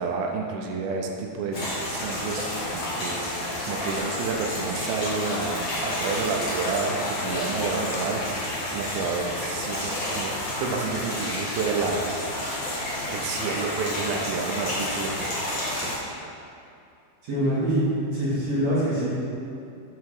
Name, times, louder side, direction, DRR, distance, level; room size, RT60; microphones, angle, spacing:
voice 1, 0.0-3.4 3.7-12.1 13.1-15.4 15.7-15.9, right 4 dB, 80° right, 1 dB, 2.2 m, -30 dB
sound 1, 1.5-16.0, left 1 dB, 55° left, 1.3 m, -30 dB
Applause, 4.6-9.5, left 3 dB, 85° left, 2.6 m, -40 dB
voice 2, 17.2-19.1, right 1 dB, 55° right, -11 dB, 2.2 m, -24 dB
7.5 x 3.5 x 4.7 m, 2.6 s
omnidirectional pair, 4.6 m